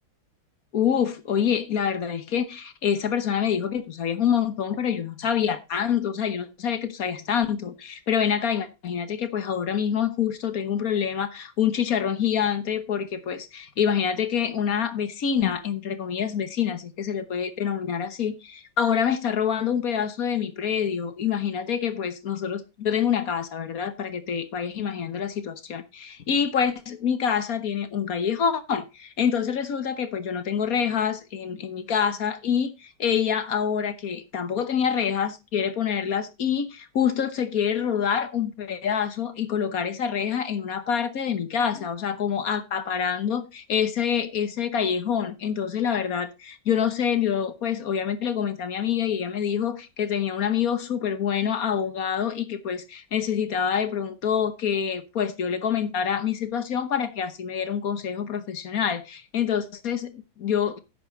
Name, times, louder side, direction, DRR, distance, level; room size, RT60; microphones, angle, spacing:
voice 1, 0.7-60.8, left 8 dB, 55° left, 1.3 m, -26 dB
11.0 x 8.2 x 3.9 m
omnidirectional pair, 2.1 m